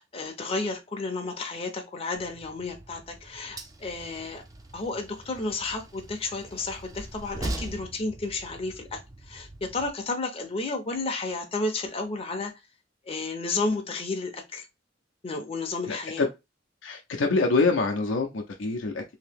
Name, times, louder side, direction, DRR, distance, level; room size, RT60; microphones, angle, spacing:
voice 1, 0.0-4.4 4.7-9.0 9.3-12.5 13.1-14.7 15.2-16.2, left 3 dB, 30° left, 0.6 m, -32 dB
Train, 2.2-9.9, right 1 dB, 20° right, 0.4 m, -41 dB
voice 2, 15.9-16.3 16.8-19.1, left 3 dB, 80° left, 0.5 m, -25 dB
2.8 x 2.7 x 3.4 m
head